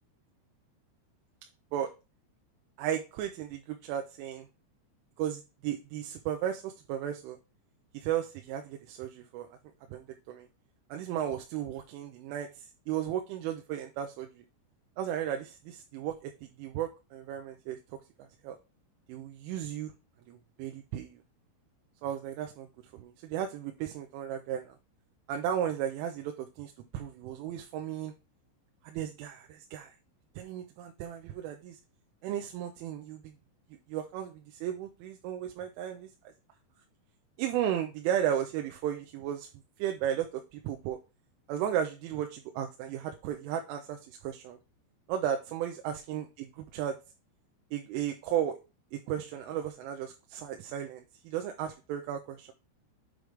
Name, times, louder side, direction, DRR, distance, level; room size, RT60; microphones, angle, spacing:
voice 1, 2.8-4.5 5.2-7.4 7.9-9.5 9.9-10.5 10.9-14.4 15.0-17.8 18.2-18.6 19.1-19.9 20.3-21.2 22.0-22.7 22.9-24.8 25.3-28.1 28.8-29.9 30.4-31.8 32.2-33.3 33.9-36.1 37.4-39.5 39.8-41.0 41.5-44.6 45.1-47.0 47.7-48.6 48.9-52.5, right 10 dB, 85° right, 5 dB, 3.2 m, -35 dB
7.8 x 3.2 x 5.0 m, 0.29 s
omnidirectional pair, 5.6 m